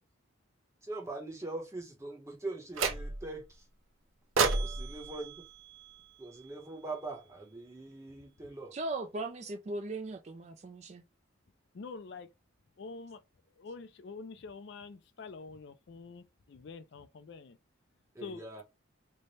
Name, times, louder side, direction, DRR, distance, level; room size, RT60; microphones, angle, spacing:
voice 1, 0.8-3.7 4.5-5.4 6.2-8.7 18.1-18.6, right 2 dB, 15° right, 0.8 m, -42 dB
sound 1, 2.7-3.4 4.4-6.6, right 4 dB, 75° right, 0.6 m, -33 dB
voice 2, 8.7-11.0, right 2 dB, 35° right, 0.3 m, -38 dB
voice 3, 11.7-12.3 12.8-13.2 13.6-17.6 18.2-18.4, left 4 dB, 55° left, 0.4 m, -46 dB
3.3 x 2.1 x 4.0 m
head